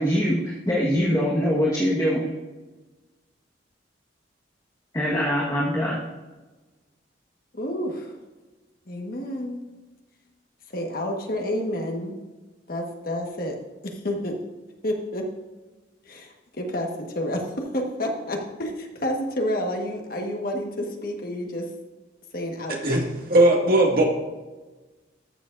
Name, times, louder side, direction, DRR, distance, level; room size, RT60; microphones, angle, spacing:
voice 1, 0.0-2.3 4.9-6.0, equal, 20° left, -6 dB, 1.4 m, -23 dB
voice 2, 7.5-8.2 8.9-9.6 10.7-12.2 12.7-13.6 13.8-14.4 14.8-15.2 16.0-21.6 22.3-23.0, left 1 dB, 50° left, 1 dB, 1.5 m, -29 dB
voice 3, 22.8-24.0, right 1 dB, 55° right, -1 dB, 2.0 m, -18 dB
13.5 x 7.0 x 2.6 m, 1.2 s
head